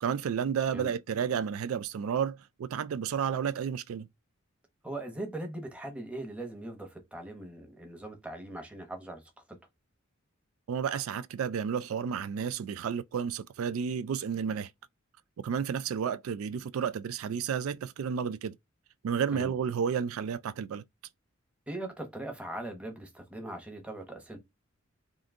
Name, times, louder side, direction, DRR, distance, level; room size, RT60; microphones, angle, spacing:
voice 1, 0.0-4.1 10.7-14.7 15.4-18.6 19.0-20.8, right 7 dB, 80° right, 0.3 m, -31 dB
voice 2, 4.8-9.2 9.5-9.6 19.3-19.5 21.7-24.4, right 1 dB, 5° right, 0.8 m, -40 dB
3.7 x 2.6 x 3.6 m
head